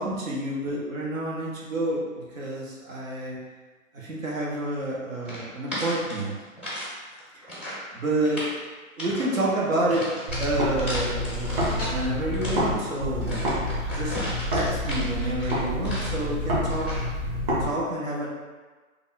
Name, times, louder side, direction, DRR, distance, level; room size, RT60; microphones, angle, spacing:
voice 1, 0.0-3.4 3.9-6.3 7.9-8.5 9.0-13.4 13.9-14.2 14.5-17.0 17.6-18.3, right 1 dB, 70° right, -5 dB, 1.2 m, -29 dB
sound 1, 5.2-6.9 7.2-7.9 8.2-8.6 9.0-9.4 9.9-12.0 12.3-16.3 16.7-17.1, equal, 5° right, 0.5 m, -35 dB
sound 2, 10.3-12.7 13.0-17.6, left 1 dB, 40° right, 1.5 m, -28 dB
3.6 x 2.4 x 3.8 m, 1.3 s
hypercardioid pair, 130°, 41 cm